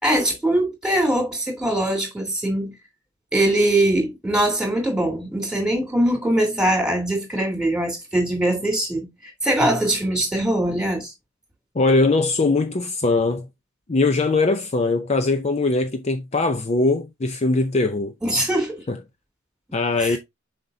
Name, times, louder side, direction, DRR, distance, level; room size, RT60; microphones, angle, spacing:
voice 1, 0.0-2.7 3.3-9.1 9.4-11.1 18.2-18.8 20.0-20.2, right 1 dB, 5° right, 3.1 m, -22 dB
voice 2, 11.8-13.5 13.9-18.1 18.9-19.0 19.7-20.2, left 3 dB, 35° left, 0.6 m, -21 dB
7.3 x 5.1 x 2.7 m
head